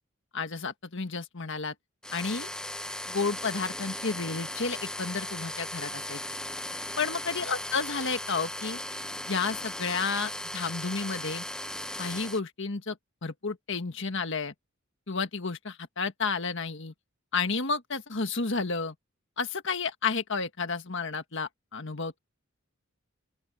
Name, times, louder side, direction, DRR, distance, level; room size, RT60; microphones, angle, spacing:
voice 1, 0.3-1.7 2.1-2.5 3.1-6.2 7.0-8.8 9.3-11.4 12.0-13.0 13.2-14.5 15.1-16.9 17.3-18.9 19.4-22.2, left 4 dB, 60° left, 1.7 m, -31 dB
sound 1, 2.0-12.4, left 1 dB, 5° left, 1.2 m, -37 dB
open air
head